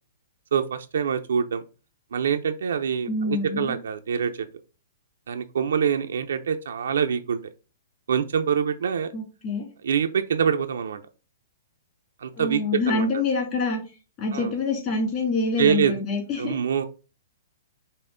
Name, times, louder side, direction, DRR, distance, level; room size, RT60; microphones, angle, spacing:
voice 1, 0.5-1.6 2.1-4.5 5.3-7.4 8.1-9.1 9.8-11.0 12.2-12.6 12.9-13.1 14.3-14.5 15.6-15.9 16.4-16.8, right 7 dB, 80° right, 7 dB, 0.4 m, -25 dB
voice 2, 3.1-3.8 9.1-9.7 12.4-13.8 14.2-16.6, left 3 dB, 30° left, -2 dB, 2.2 m, -26 dB
5.5 x 2.0 x 3.7 m, 0.34 s
hypercardioid pair, 150°, 0 cm